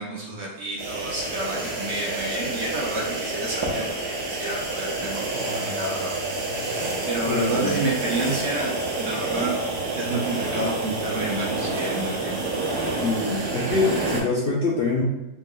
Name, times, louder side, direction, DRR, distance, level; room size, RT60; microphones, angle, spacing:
voice 1, 0.0-6.2 6.5-9.5 10.0-12.4, right 2 dB, 55° right, -3 dB, 0.9 m, -30 dB
sound 1, 0.8-14.2, right 2 dB, 90° right, 1.5 m, -28 dB
voice 2, 7.3-7.8 13.0-15.0, left 3 dB, 75° left, -4 dB, 0.5 m, -25 dB
4.2 x 3.3 x 2.2 m, 0.98 s
omnidirectional pair, 1.7 m